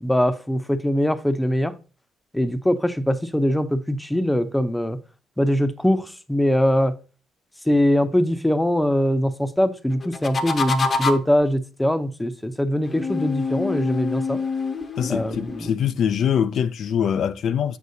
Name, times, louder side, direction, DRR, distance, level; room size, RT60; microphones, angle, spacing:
voice 1, 0.0-1.7 2.3-5.0 5.4-6.9 7.7-14.4 15.1-15.7, equal, 5° left, 0.6 m, -22 dB
sound 1, 10.0-11.4 12.9-15.7, left 4 dB, 40° left, 0.8 m, -26 dB
voice 2, 15.0-17.8, left 8 dB, 65° left, 0.3 m, -23 dB
7.2 x 6.4 x 2.7 m
cardioid pair, 90°, 0 cm